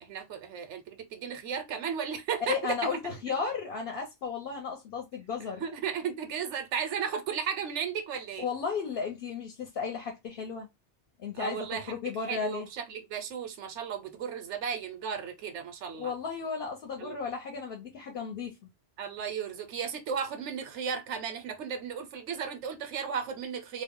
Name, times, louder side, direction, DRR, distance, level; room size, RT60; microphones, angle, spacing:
voice 1, 0.0-2.9 5.6-8.5 11.3-16.1 17.0-17.2 19.0-23.8, right 7 dB, 85° right, 0.9 m, -35 dB
voice 2, 2.5-5.6 8.4-10.7 11.2-12.7 15.9-18.6, left 5 dB, 60° left, 0.9 m, -34 dB
2.4 x 2.0 x 3.6 m
omnidirectional pair, 1.2 m